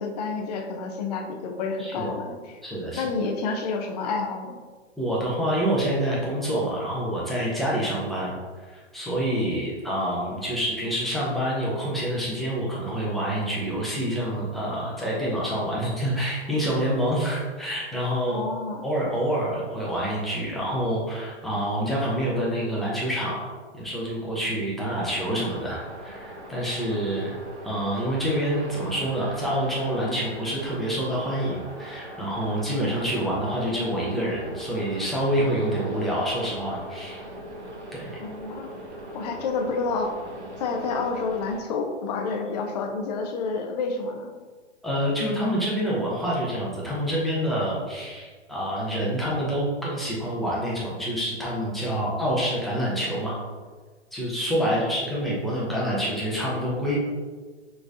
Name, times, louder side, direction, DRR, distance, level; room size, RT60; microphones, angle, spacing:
voice 1, 0.0-2.6 2.9-4.6 18.3-18.8 38.2-38.7 39.1-40.1 40.6-44.3 54.7-55.0, left 4 dB, 35° left, 3 dB, 0.6 m, -29 dB
voice 2, 2.6-3.0 5.0-8.4 8.7-18.4 18.8-27.3 27.6-37.2 37.9-38.2 44.8-53.4 54.1-57.0, equal, ahead, -6 dB, 0.8 m, -27 dB
sound 1, 24.9-41.6, right 1 dB, 75° right, 1.3 m, -41 dB
6.1 x 3.3 x 2.6 m, 1.4 s
hypercardioid pair, 130°, 35 cm